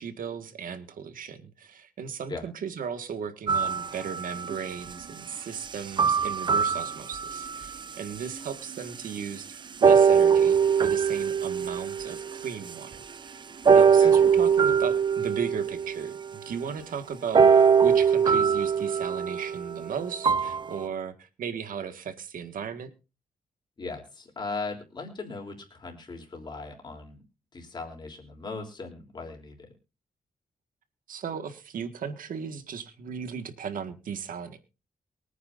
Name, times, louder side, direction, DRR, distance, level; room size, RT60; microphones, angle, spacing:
voice 1, 0.0-13.3 13.7-22.9 31.1-34.6, right 7 dB, 75° right, 9 dB, 1.8 m, -36 dB
sound 1, 3.5-4.6 6.0-7.7 8.3-8.4 9.8-12.7 13.6-16.3 17.3-20.8, right 6 dB, 30° right, 0.5 m, -22 dB
voice 2, 23.8-27.2 27.5-29.7, left 3 dB, 30° left, 2 dB, 3.4 m, -38 dB
23.0 x 9.5 x 2.6 m, 0.31 s
wide cardioid pair, 180°, 15 cm